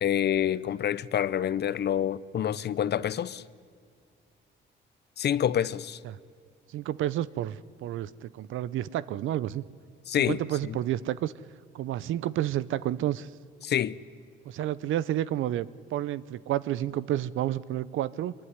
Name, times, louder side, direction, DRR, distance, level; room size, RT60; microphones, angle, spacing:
voice 1, 0.0-3.4 5.2-6.0 10.1-10.8 13.6-13.9, left 10 dB, 55° left, 0.8 m, -27 dB
voice 2, 6.7-9.6 10.2-11.3 11.7-13.3 14.4-18.3, right 12 dB, 80° right, 0.7 m, -30 dB
24.0 x 22.5 x 9.7 m
cardioid pair, 90°, 20 cm